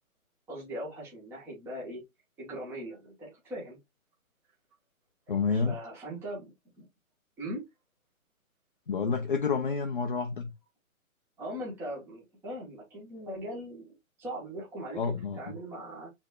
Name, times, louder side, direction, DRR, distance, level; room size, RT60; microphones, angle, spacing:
voice 1, 0.5-2.0 2.4-3.8 5.5-6.5 6.8-6.9 7.4-7.6 11.4-16.1, right 1 dB, 5° right, 1.1 m, -40 dB
voice 2, 5.3-5.8 8.9-10.5 15.0-15.4, left 5 dB, 40° left, 0.6 m, -29 dB
6.0 x 3.5 x 2.4 m
hypercardioid pair, 155°, 42 cm